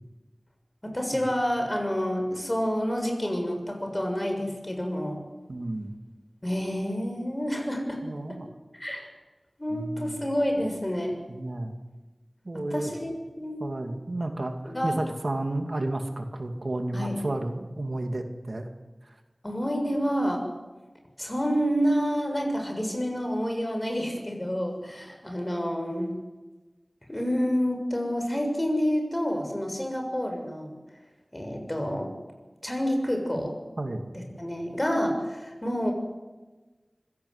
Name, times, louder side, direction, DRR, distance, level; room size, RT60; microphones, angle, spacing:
voice 1, 0.8-5.2 6.4-8.0 8.3-8.4 8.7-9.1 9.6-11.2 12.5-13.6 14.6-15.0 16.9-17.1 19.4-20.4 21.2-26.2 27.1-30.7 31.3-32.1 32.6-33.6 34.1-35.9, equal, 25° left, 3 dB, 6.6 m, -28 dB
voice 2, 5.5-5.9 8.0-8.5 9.7-10.2 11.3-11.7 12.4-12.9 13.6-18.7 19.1-19.2 33.4-33.5 33.8-34.0, right 2 dB, 70° right, 5 dB, 2.4 m, -32 dB
25.0 x 17.0 x 8.1 m, 1.2 s
wide cardioid pair, 50°, 0 cm